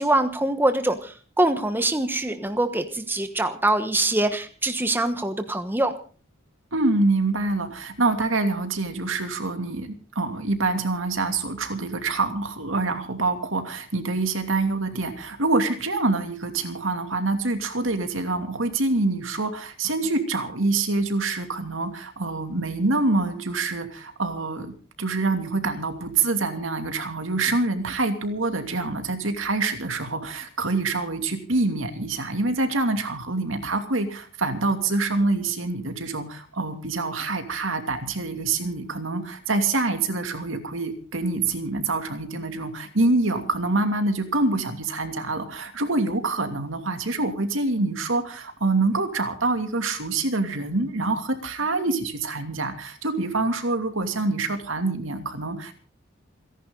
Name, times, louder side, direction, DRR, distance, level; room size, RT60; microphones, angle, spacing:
voice 1, 0.0-5.9, right 1 dB, 10° right, 8 dB, 1.2 m, -24 dB
voice 2, 6.7-55.7, right 3 dB, 75° right, 7 dB, 2.7 m, -26 dB
29.0 x 11.0 x 4.0 m, 0.39 s
head